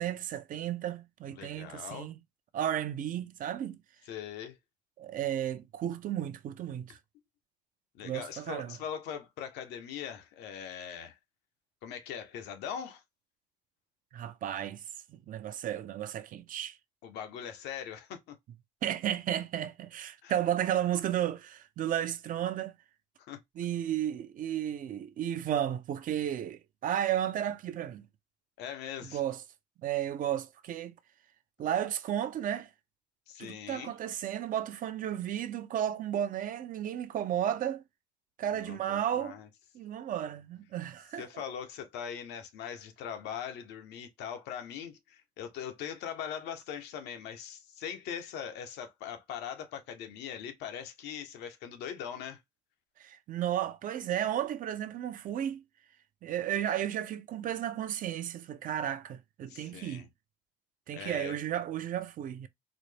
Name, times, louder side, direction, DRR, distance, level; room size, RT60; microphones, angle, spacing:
voice 1, 0.0-2.1 2.5-3.8 5.0-7.0 8.0-8.8 14.1-14.8 15.1-16.8 18.8-22.7 23.6-28.0 29.0-29.4 29.8-30.9 31.6-32.7 33.4-37.8 38.4-39.4 39.7-41.2 53.0-55.6 56.2-60.1 60.9-62.5, right 10 dB, 55° right, 0.5 m, -33 dB
voice 2, 1.3-2.1 4.1-4.6 7.9-11.2 11.8-13.0 17.0-18.4 20.2-20.4 23.3-23.4 28.6-29.2 33.3-33.9 38.5-39.5 41.2-52.4 59.5-60.1 60.9-61.4, left 8 dB, 85° left, 0.9 m, -41 dB
4.0 x 2.1 x 3.2 m
cardioid pair, 110°, 17 cm